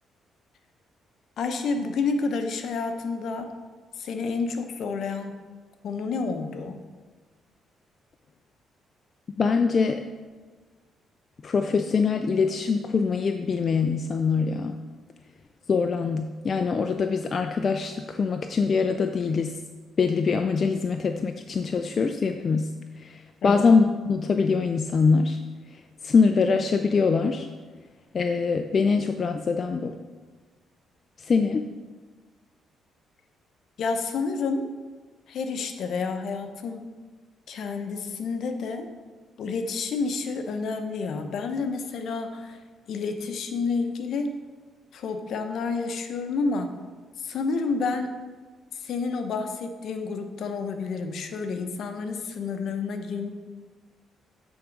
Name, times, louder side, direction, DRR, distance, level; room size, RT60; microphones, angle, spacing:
voice 1, 1.4-3.5 4.0-5.4 5.8-6.8 23.4-23.7 33.8-34.7 35.3-36.9 37.5-38.9 39.4-42.6 42.9-44.4 44.9-46.7 47.2-48.1 48.7-53.3, left 4 dB, 65° left, 6 dB, 0.7 m, -29 dB
voice 2, 9.4-10.0 11.4-14.8 15.7-19.6 20.0-22.7 23.0-25.4 26.0-27.5 28.1-30.0 31.3-31.7, left 5 dB, 45° left, 6 dB, 0.4 m, -23 dB
8.8 x 3.6 x 5.1 m, 1.4 s
cardioid pair, 90°, 0 cm